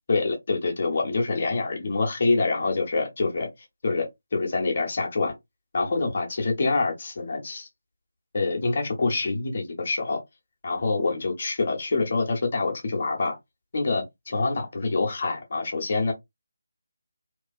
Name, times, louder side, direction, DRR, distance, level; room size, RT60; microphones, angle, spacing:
voice 1, 0.1-3.5 3.8-5.3 5.7-7.7 8.3-10.2 10.6-13.4 13.7-16.1, left 3 dB, 40° left, 0.7 m, -26 dB
2.5 x 2.3 x 2.2 m
figure-of-eight pair, 155°, 0 cm